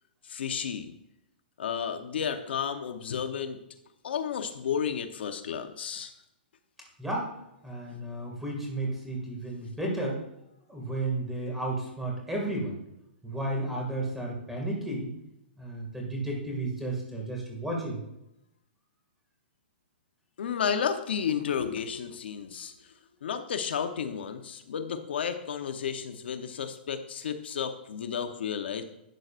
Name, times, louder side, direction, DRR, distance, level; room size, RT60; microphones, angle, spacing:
voice 1, 0.2-0.9 1.6-3.6 4.0-6.1 20.4-22.7 23.2-28.8, left 7 dB, 75° left, 8 dB, 0.8 m, -32 dB
voice 2, 7.0-7.3 7.6-10.2 10.7-12.8 13.2-15.1 15.6-18.0, right 2 dB, 5° right, -1 dB, 2.1 m, -33 dB
12.0 x 8.0 x 2.5 m, 0.83 s
hypercardioid pair, 160°, 6 cm